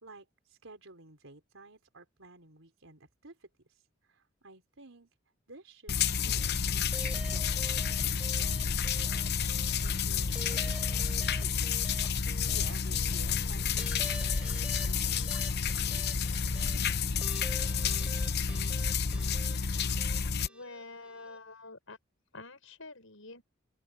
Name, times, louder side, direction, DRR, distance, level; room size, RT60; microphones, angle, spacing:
voice 1, 0.0-5.1 5.5-11.6 12.0-17.2, right 2 dB, 75° right, 4.3 m, -55 dB
sound 1, 5.9-20.5, left 6 dB, 55° left, 0.8 m, -30 dB
sound 2, 6.9-21.4, right 1 dB, 5° right, 5.3 m, -48 dB
voice 2, 20.5-22.0 22.3-23.4, left 3 dB, 80° left, 6.3 m, -47 dB
open air
head